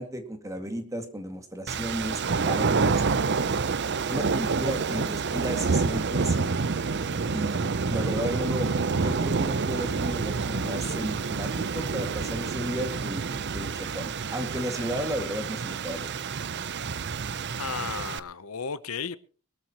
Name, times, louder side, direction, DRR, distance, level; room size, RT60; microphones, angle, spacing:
voice 1, 0.0-3.5 4.1-6.8 7.3-7.6 7.9-8.7 9.0-16.1, equal, 15° right, 2.2 m, -34 dB
sound 1, 1.7-18.2, right 4 dB, 55° right, 0.7 m, -28 dB
voice 2, 17.5-19.2, left 6 dB, 85° left, 0.8 m, -34 dB
22.5 x 13.0 x 3.0 m
head